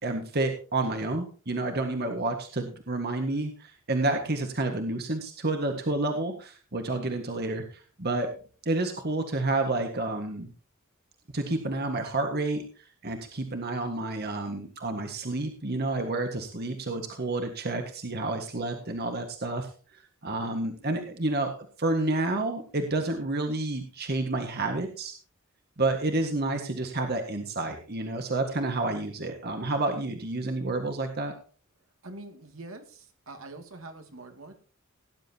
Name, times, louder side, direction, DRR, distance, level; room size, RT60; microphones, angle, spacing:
voice 1, 0.0-8.3 8.6-10.5 11.3-12.6 13.0-19.7 20.2-21.5 21.8-25.1 25.8-31.3, right 2 dB, 50° right, 4 dB, 1.7 m, -29 dB
voice 2, 32.0-32.8 33.3-34.6, right 2 dB, 75° right, 5 dB, 2.5 m, -44 dB
18.0 x 10.5 x 2.9 m, 0.39 s
head